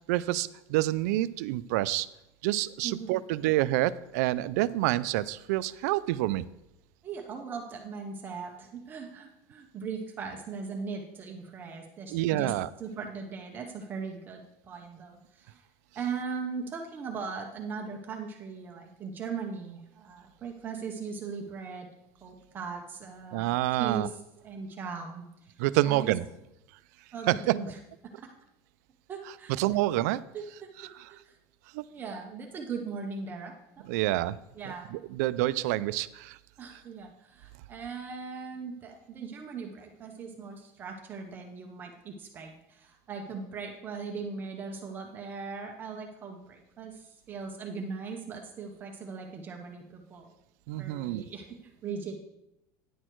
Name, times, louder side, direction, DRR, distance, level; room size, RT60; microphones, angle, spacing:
voice 1, 0.1-2.1 2.4-6.5 12.1-12.7 23.3-24.1 25.6-26.3 27.3-27.5 29.6-30.2 31.7-31.8 33.9-34.4 34.9-36.4 50.7-51.2, right 16 dB, 90° right, 16 dB, 0.4 m, -27 dB
voice 2, 2.8-3.1 7.0-12.5 12.8-15.6 15.9-21.9 22.2-25.5 25.8-26.1 27.1-27.8 28.2-28.3 29.1-29.5 30.3-31.4 31.9-33.9 34.6-34.9 36.6-50.3 50.8-52.2, right 5 dB, 25° right, 2 dB, 0.7 m, -39 dB
10.0 x 6.4 x 4.5 m, 0.86 s
cardioid pair, 175°, 9 cm